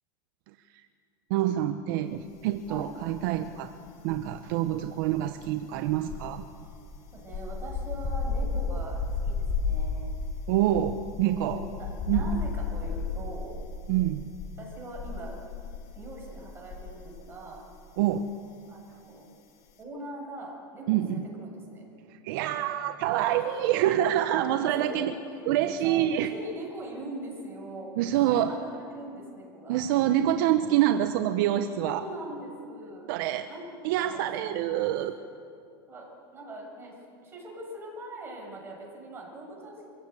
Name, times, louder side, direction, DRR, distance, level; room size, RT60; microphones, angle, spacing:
voice 1, 1.3-3.7 4.0-6.4 10.5-11.6 12.1-12.4 13.9-14.3 18.0-18.3 20.9-21.3 22.1-25.1 25.5-26.3 28.0-28.5 29.7-32.0 33.1-33.5 33.8-35.2, right 12 dB, 65° right, 8 dB, 1.0 m, -26 dB
sound 1, 2.7-3.5 3.7-17.3 17.5-17.8, left 4 dB, 45° left, 2.7 m, -33 dB
voice 2, 7.1-10.3 11.3-13.5 14.6-15.4 15.9-17.6 18.7-19.2 19.8-21.8 23.1-23.8 24.2-25.1 25.4-25.5 25.8-29.8 31.8-33.2 33.5-33.6 34.0-34.6 35.9-36.9 37.2-39.9, right 1 dB, 20° right, -1 dB, 7.5 m, -41 dB
24.0 x 16.5 x 8.3 m, 2.4 s
supercardioid pair, 130°, 12 cm